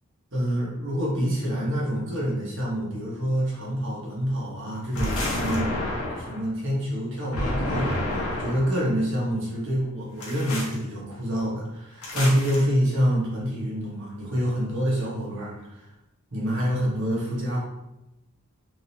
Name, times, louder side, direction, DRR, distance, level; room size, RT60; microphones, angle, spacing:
voice 1, 0.3-5.7 6.1-15.9 16.3-17.6, equal, 55° right, -5 dB, 1.3 m, -27 dB
sound 1, 4.9-6.4 7.3-8.8 10.2-10.8 12.0-12.6, left 1 dB, 80° left, 1.1 m, -29 dB
3.7 x 3.5 x 2.8 m, 0.90 s
head